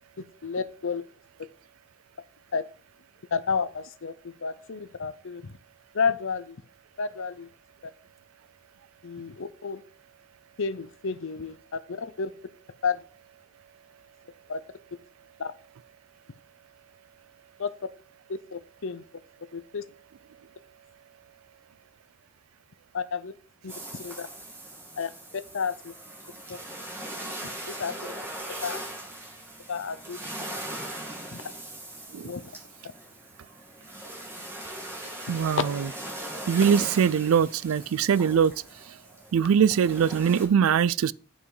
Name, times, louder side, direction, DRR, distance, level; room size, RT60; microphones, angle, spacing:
voice 1, 0.4-1.0 2.5-2.6 3.3-5.6 5.9-6.6 7.0-7.5 7.8-7.9 9.0-9.8 10.6-12.3 12.8-13.0 14.5-14.6 15.4-15.5 17.6-17.7 18.3-19.0 19.5-19.8 22.9-23.3 23.6-24.3 25.0-25.9 26.5-26.6 27.7-28.0 28.6-28.8 29.7-30.2 31.3-31.4 32.2-32.4 35.6-35.7, left 5 dB, 65° left, 0.6 m, -31 dB
sound 1, 23.7-40.4, right 1 dB, 10° right, 2.7 m, -40 dB
voice 2, 35.3-35.9 36.5-38.5 39.3-41.1, right 7 dB, 70° right, 0.3 m, -22 dB
8.6 x 5.5 x 4.8 m
head